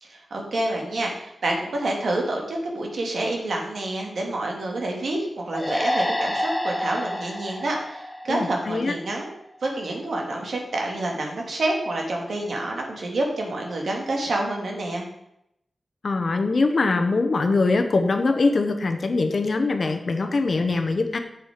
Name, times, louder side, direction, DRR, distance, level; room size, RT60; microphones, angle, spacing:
voice 1, 0.0-9.3 9.6-15.1, right 2 dB, 80° right, 0 dB, 2.1 m, -28 dB
sound 1, 5.5-9.0, left 1 dB, 10° left, 0.9 m, -28 dB
voice 2, 8.3-8.9 16.0-21.2, left 3 dB, 55° left, 7 dB, 1.0 m, -22 dB
7.5 x 7.3 x 5.0 m, 0.79 s
wide cardioid pair, 120°, 0 cm